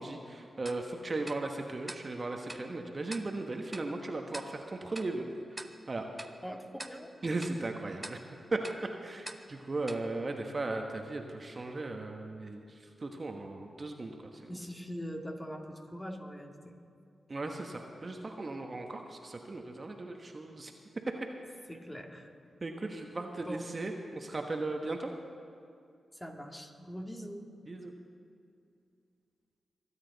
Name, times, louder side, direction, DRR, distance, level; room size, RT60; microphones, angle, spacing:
voice 1, 0.0-6.1 7.2-8.6 9.0-14.6 17.3-20.7 22.6-25.1 27.7-27.9, right 2 dB, 45° right, 3 dB, 1.2 m, -37 dB
Tick-tock, 0.7-11.1, right 1 dB, 20° right, 0.8 m, -49 dB
voice 2, 6.4-7.1 14.5-16.8 21.7-22.3 23.5-23.6 26.1-27.5, equal, 15° left, 2 dB, 2.1 m, -42 dB
24.5 x 8.8 x 4.0 m, 2.4 s
supercardioid pair, 40°, 0 cm